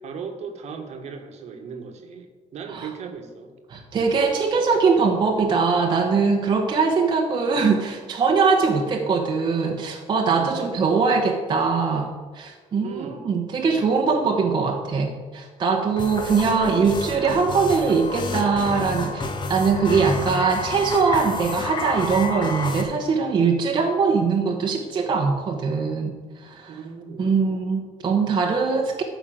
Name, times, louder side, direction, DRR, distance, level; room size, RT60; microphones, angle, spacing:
voice 1, 0.0-3.5 10.3-10.9 12.8-13.3 26.7-27.3, right 5 dB, 55° right, 6 dB, 1.5 m, -37 dB
voice 2, 3.7-26.8 27.2-29.0, right 5 dB, 35° right, 1 dB, 1.1 m, -22 dB
sound 1, 16.0-22.8, left 2 dB, 35° left, 1.5 m, -30 dB
13.0 x 5.6 x 7.7 m, 1.4 s
cardioid pair, 170°, 13 cm